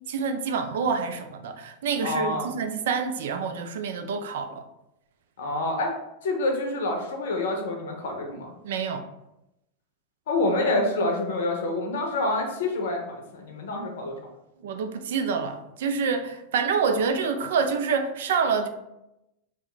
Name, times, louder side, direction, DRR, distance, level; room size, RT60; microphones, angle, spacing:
voice 1, 0.1-4.6 8.6-9.0 14.6-18.7, right 5 dB, 65° right, 8 dB, 0.3 m, -27 dB
voice 2, 2.0-2.5 5.4-6.0 6.2-8.5 10.3-14.2, left 2 dB, 65° left, 2 dB, 0.6 m, -27 dB
2.2 x 2.1 x 3.7 m, 0.89 s
figure-of-eight pair, 90°, 0 cm